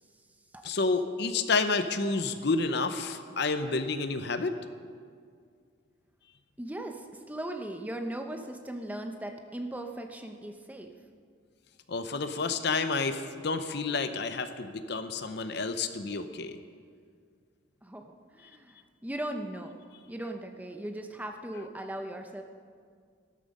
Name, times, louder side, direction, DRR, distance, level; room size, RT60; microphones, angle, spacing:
voice 1, 0.6-4.5 11.9-16.6, left 4 dB, 55° left, 9 dB, 0.7 m, -30 dB
voice 2, 6.6-10.9 17.8-19.7 20.1-22.4, right 1 dB, 10° right, 5 dB, 0.7 m, -38 dB
14.0 x 12.5 x 5.3 m, 2.1 s
head